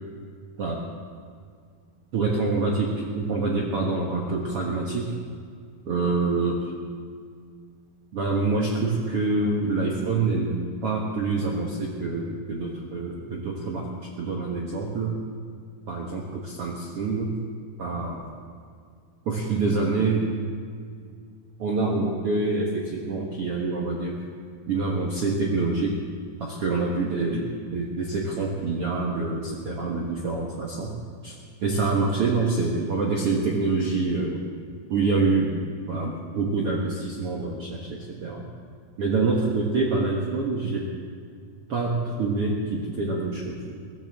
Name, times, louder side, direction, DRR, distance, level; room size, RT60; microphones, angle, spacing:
voice 1, 2.1-5.1 5.8-6.7 8.1-13.9 14.2-15.2 15.9-17.4 17.8-18.2 19.3-20.3 21.6-24.2 24.7-26.0 26.4-31.0 31.2-31.3 31.6-34.4 34.9-35.6 35.9-38.4 39.0-40.9 41.7-43.7, right 3 dB, 75° right, -2 dB, 1.3 m, -26 dB
22.0 x 16.5 x 3.6 m, 2.1 s
omnidirectional pair, 4.8 m